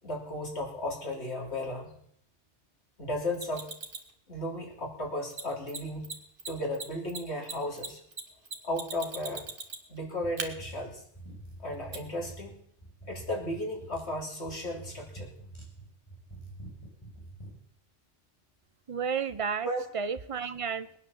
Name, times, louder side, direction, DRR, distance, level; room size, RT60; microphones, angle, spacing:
voice 1, 0.0-1.9 3.0-3.7 4.3-6.1 6.5-8.0 8.6-9.5 9.9-11.0 11.6-12.6 13.1-15.3 19.6-19.8, left 1 dB, 65° left, 0 dB, 3.8 m, -35 dB
Mechanisms, 3.3-4.1 5.3-5.4 5.7-5.8 6.0-6.1 6.4-10.0 10.4-10.5 11.9-12.0, right 3 dB, 50° right, 1.9 m, -38 dB
sound 1, 10.2-17.6, right 2 dB, 25° left, 5.0 m, -46 dB
voice 2, 18.9-19.7 19.9-21.0, right 6 dB, 30° right, 12 dB, 0.8 m, -32 dB
20.0 x 9.7 x 7.2 m, 0.69 s
omnidirectional pair, 1.2 m